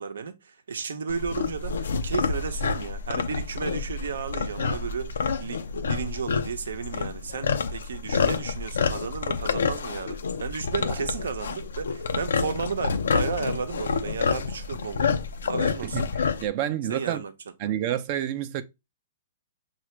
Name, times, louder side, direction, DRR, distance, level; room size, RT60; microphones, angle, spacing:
voice 1, 0.0-15.1 15.5-16.1 16.9-17.3, right 5 dB, 80° right, 0.7 m, -33 dB
sound 1, 1.1-16.5, left 5 dB, 80° left, 0.5 m, -28 dB
voice 2, 15.8-17.2 17.6-18.6, right 11 dB, 45° right, 0.5 m, -29 dB
5.7 x 2.5 x 3.1 m
hypercardioid pair, 125°, 0 cm